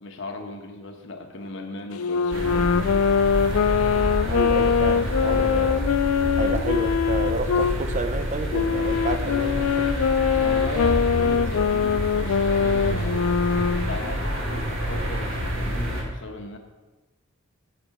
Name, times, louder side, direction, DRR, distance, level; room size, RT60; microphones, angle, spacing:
voice 1, 0.0-3.1 6.4-6.6 10.4-13.5 13.8-16.6, left 2 dB, 60° left, 1.0 m, -37 dB
Wind instrument woodwind instrument, 1.9-7.8 8.5-13.9, left 6 dB, 85° left, 0.4 m, -22 dB
sound 1, 2.3-16.0, equal, 70° right, 2.0 m, -28 dB
voice 2, 3.9-5.9 6.4-9.9, right 2 dB, 35° right, 0.6 m, -30 dB
6.8 x 6.8 x 5.9 m
head